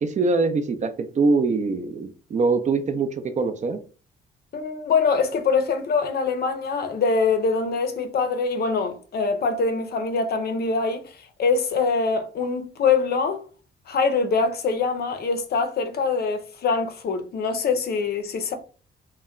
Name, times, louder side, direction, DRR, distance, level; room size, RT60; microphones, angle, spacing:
voice 1, 0.0-3.8, right 3 dB, 35° right, 0.4 m, -23 dB
voice 2, 4.5-13.4 13.9-18.5, left 4 dB, 55° left, 0.5 m, -24 dB
2.2 x 2.1 x 3.6 m
cardioid pair, 90°, 20 cm